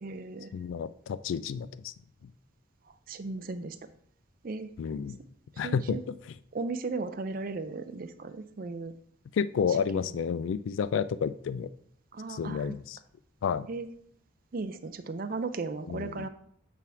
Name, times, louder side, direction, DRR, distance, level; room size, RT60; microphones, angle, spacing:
voice 1, 0.0-0.5 3.1-3.7 4.4-4.7 5.6-6.0 6.5-8.9 10.0-10.1 12.1-12.8 13.7-13.9 14.5-16.3, right 3 dB, 45° right, 10 dB, 0.5 m, -36 dB
voice 2, 0.5-1.9 4.8-5.2 5.6-6.4 9.3-11.7 12.3-13.0 13.4-13.7 15.9-16.3, left 6 dB, 75° left, 16 dB, 0.3 m, -31 dB
8.4 x 3.5 x 4.6 m, 0.66 s
head